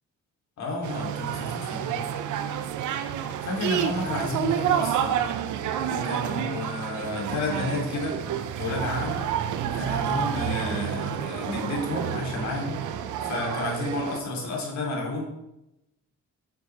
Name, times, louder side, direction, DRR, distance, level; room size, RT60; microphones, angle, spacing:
voice 1, 0.6-2.1 3.4-5.2 5.9-8.2 8.6-9.3 9.6-15.2, left 2 dB, 65° left, -1 dB, 2.9 m, -31 dB
sound 1, 0.8-14.2, right 9 dB, 80° right, 0.7 m, -29 dB
9.4 x 6.4 x 3.4 m, 0.89 s
cardioid pair, 90°, 30 cm